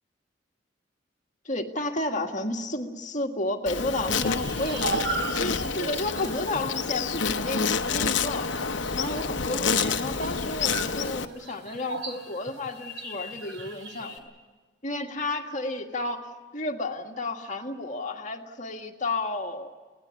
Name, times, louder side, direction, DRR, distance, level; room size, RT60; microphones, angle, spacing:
voice 1, 1.5-8.5 8.9-14.3 14.8-19.7, left 2 dB, 40° left, 3 dB, 1.7 m, -32 dB
Insect, 3.7-11.3, left 5 dB, 75° left, 0.8 m, -28 dB
sound 1, 4.2-14.2, right 3 dB, 80° right, 3.1 m, -37 dB
24.5 x 18.0 x 8.3 m, 1.4 s
head